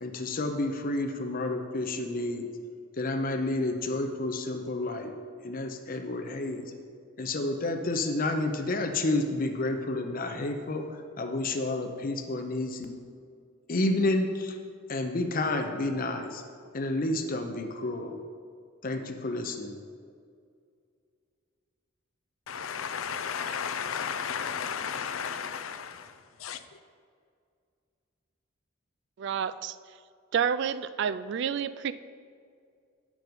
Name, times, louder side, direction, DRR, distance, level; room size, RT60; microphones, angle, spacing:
voice 1, 0.0-2.5 3.0-5.1 5.4-6.6 7.2-10.9 11.2-13.0 13.7-14.6 14.9-16.4 16.7-18.2 18.8-19.8, left 2 dB, 45° left, 0.7 m, -30 dB
voice 2, 22.5-26.6, left 7 dB, 90° left, 0.5 m, -34 dB
voice 3, 29.2-29.8 30.3-31.9, right 7 dB, 60° right, 0.3 m, -29 dB
9.1 x 6.2 x 5.3 m
head